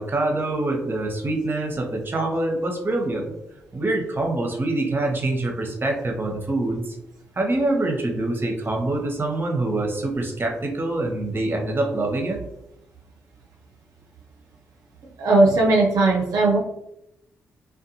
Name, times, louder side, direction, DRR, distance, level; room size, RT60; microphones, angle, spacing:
voice 1, 0.0-3.3 3.7-7.0 7.3-12.4, right 2 dB, 30° right, 2 dB, 0.7 m, -25 dB
voice 2, 15.2-16.6, right 2 dB, 65° right, -2 dB, 0.5 m, -18 dB
2.5 x 2.2 x 2.7 m, 0.82 s
hypercardioid pair, 40°, 7 cm